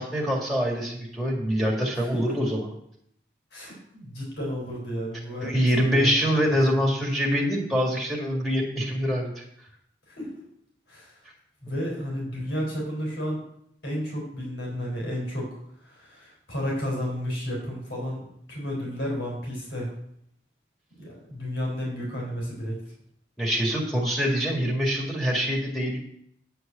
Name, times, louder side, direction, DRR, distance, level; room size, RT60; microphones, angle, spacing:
voice 1, 0.0-2.7 5.4-9.4 23.4-26.0, equal, ahead, -2 dB, 2.0 m, -25 dB
voice 2, 1.9-2.3 3.5-6.1 10.1-10.3 10.9-11.2 11.6-13.4 13.8-19.9 21.0-22.8, equal, 85° left, -3 dB, 4.0 m, -32 dB
9.6 x 4.6 x 7.6 m, 0.72 s
head